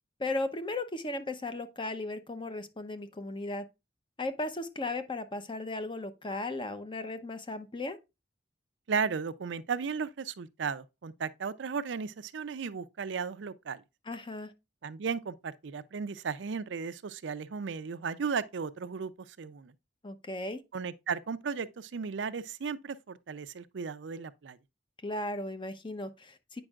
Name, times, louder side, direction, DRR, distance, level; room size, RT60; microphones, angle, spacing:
voice 1, 0.2-3.7 4.2-8.0 14.1-14.5 20.0-20.6 25.0-26.6, left 2 dB, 25° left, 0.8 m, -36 dB
voice 2, 8.9-13.8 14.8-19.1 19.4-19.7 20.7-24.6, right 5 dB, 80° right, 0.5 m, -35 dB
8.8 x 5.3 x 2.4 m
head